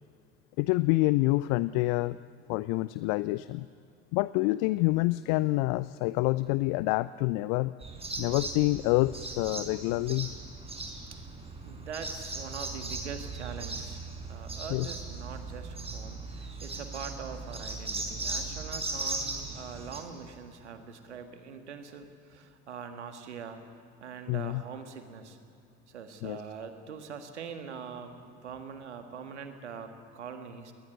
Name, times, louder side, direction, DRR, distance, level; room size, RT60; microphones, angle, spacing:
voice 1, 0.6-2.2 2.5-3.7 4.1-7.7 8.2-10.3 14.7-14.9 24.3-24.6 26.2-26.4, left 20 dB, 55° left, 18 dB, 0.5 m, -27 dB
sound 1, 7.8-20.0, right 3 dB, 15° right, 5.2 m, -38 dB
voice 2, 11.6-23.6 24.0-25.4 25.9-30.7, right 6 dB, 75° right, 7 dB, 1.8 m, -43 dB
20.5 x 20.0 x 9.8 m, 2.5 s
figure-of-eight pair, 55°, 35 cm